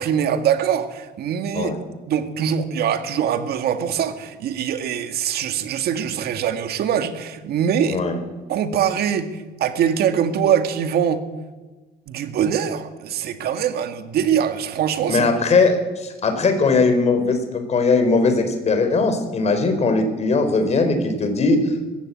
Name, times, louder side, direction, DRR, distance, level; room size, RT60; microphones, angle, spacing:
voice 1, 0.0-1.7 2.1-8.0 8.5-11.2 12.1-15.3, right 8 dB, 70° right, 8 dB, 2.1 m, -23 dB
voice 2, 15.1-21.8, left 3 dB, 40° left, 7 dB, 4.6 m, -19 dB
21.0 x 16.0 x 8.7 m, 1.2 s
cardioid pair, 110°, 17 cm